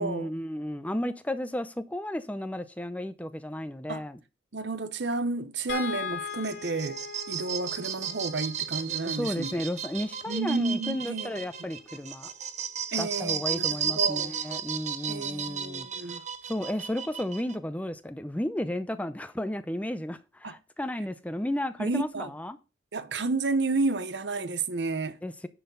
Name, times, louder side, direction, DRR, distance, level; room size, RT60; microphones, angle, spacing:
voice 1, 0.0-4.2 9.0-12.3 13.0-16.1 16.5-22.6 25.2-25.5, left 1 dB, 10° left, 0.5 m, -33 dB
voice 2, 4.5-7.0 7.3-9.6 10.3-11.4 12.9-14.3 15.1-16.2 20.4-20.5 21.8-22.3 22.9-25.2, right 3 dB, 70° right, 0.9 m, -31 dB
sound 1, 5.7-12.0 13.5-13.7 14.1-14.2, left 6 dB, 75° left, 2.8 m, -41 dB
sound 2, 6.3-17.6, right 8 dB, 40° right, 0.9 m, -34 dB
10.0 x 4.4 x 6.9 m
head